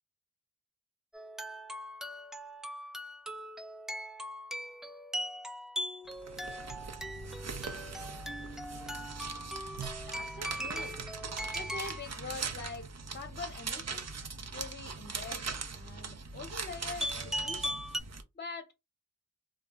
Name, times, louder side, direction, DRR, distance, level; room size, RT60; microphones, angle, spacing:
sound 1, 1.1-12.1 17.0-18.0, equal, ahead, 0.3 m, -39 dB
sound 2, 6.1-18.2, right 5 dB, 55° right, 0.5 m, -41 dB
voice 1, 10.0-11.0 11.5-14.1 14.5-17.8 18.3-18.8, left 4 dB, 35° left, 0.6 m, -44 dB
2.2 x 2.0 x 3.5 m
cardioid pair, 40°, 31 cm